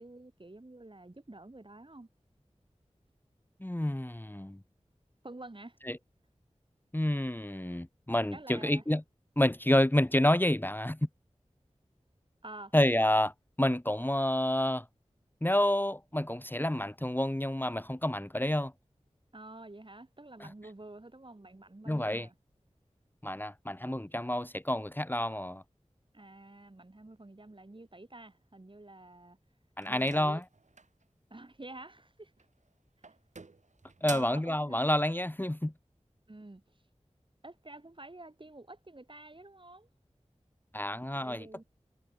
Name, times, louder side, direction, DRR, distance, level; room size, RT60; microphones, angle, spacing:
voice 1, 0.0-2.1 5.2-5.8 8.3-8.8 12.4-12.8 19.3-22.3 26.1-29.4 29.9-30.4 31.3-32.3 34.1-34.9 36.3-36.6 37.4-39.9 41.2-41.6, right 2 dB, 45° right, 7.0 m, -49 dB
voice 2, 3.6-4.6 5.9-6.0 6.9-9.0 9.4-11.0 12.7-13.3 13.6-14.9 15.4-18.7 20.4-20.5 21.9-22.3 23.2-25.6 29.8-30.4 34.0-35.7 40.7-41.5, left 1 dB, 15° left, 1.5 m, -29 dB
sound 1, 29.8-31.0 32.3-32.7 33.0-34.5, right 3 dB, 85° right, 4.3 m, -47 dB
wide cardioid pair, 45°, 12 cm